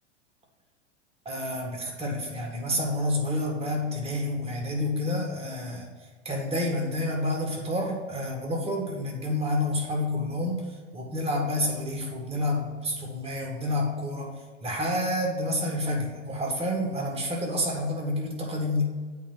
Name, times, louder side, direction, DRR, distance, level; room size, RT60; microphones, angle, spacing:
voice 1, 1.3-5.9 6.3-10.6 10.9-14.3 14.6-18.8, left 1 dB, 15° right, 0 dB, 1.8 m, -29 dB
8.4 x 3.5 x 5.9 m, 1.4 s
hypercardioid pair, 95°, 36 cm